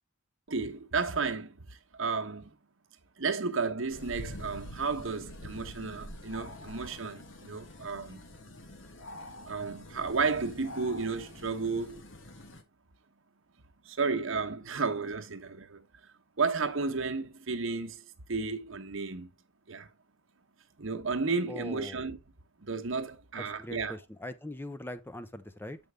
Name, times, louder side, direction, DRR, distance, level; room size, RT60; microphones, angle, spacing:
voice 1, 0.5-2.5 3.2-8.3 9.5-12.1 13.8-15.9 16.4-19.3 19.7-19.9 20.8-22.2 22.6-24.0, right 4 dB, 70° right, 1.0 m, -33 dB
sound 1, 3.9-12.6, left 1 dB, 60° left, 1.2 m, -46 dB
voice 2, 21.5-22.0 23.3-25.8, left 1 dB, 10° left, 0.6 m, -41 dB
7.9 x 5.2 x 3.3 m
head